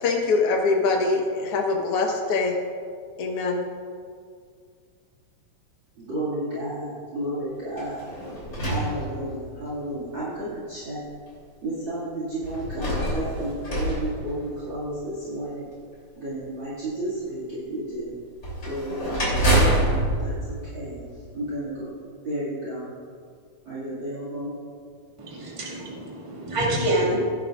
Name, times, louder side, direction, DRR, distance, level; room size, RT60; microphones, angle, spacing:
voice 1, 0.0-2.5 3.2-3.6, left 3 dB, 55° left, 0 dB, 1.9 m, -23 dB
voice 2, 6.0-8.0 8.7-11.0 11.6-15.7 16.2-18.1 18.7-20.3 20.7-21.0 21.3-21.9 22.2-22.9 23.7-24.5, right 1 dB, 40° right, -8 dB, 2.8 m, -32 dB
sound 1, 7.7-9.7 10.5-10.6 12.4-15.0 18.4-21.5, right 1 dB, 25° left, 3.5 m, -26 dB
voice 3, 25.2-27.2, right 1 dB, 15° right, -4 dB, 1.5 m, -26 dB
17.0 x 10.5 x 2.5 m, 2.1 s
omnidirectional pair, 3.6 m